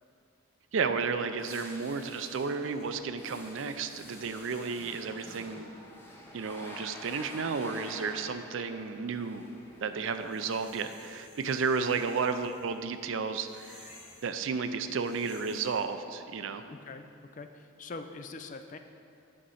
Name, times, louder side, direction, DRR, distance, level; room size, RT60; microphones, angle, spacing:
voice 1, 0.7-5.7 6.3-9.5 9.8-13.9 14.2-16.6, right 5 dB, 70° right, 9 dB, 0.4 m, -32 dB
sound 1, 0.8-10.7, left 1 dB, 10° left, 0.7 m, -49 dB
sound 2, 2.6-16.0, left 2 dB, 80° left, 2.1 m, -58 dB
voice 2, 16.7-17.1 17.3-18.8, left 3 dB, 35° left, 7 dB, 0.4 m, -43 dB
8.5 x 5.1 x 5.5 m, 2.5 s
head